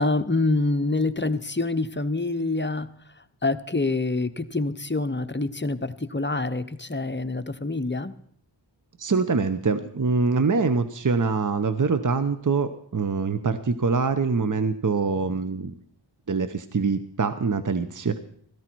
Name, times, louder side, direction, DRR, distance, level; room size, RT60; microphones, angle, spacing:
voice 1, 0.0-2.9 3.2-8.1, left 2 dB, 25° left, 10 dB, 0.9 m, -26 dB
voice 2, 9.0-15.7 16.3-18.2, right 4 dB, 45° right, 11 dB, 0.9 m, -24 dB
16.5 x 14.5 x 4.6 m, 0.63 s
wide cardioid pair, 60°, 45 cm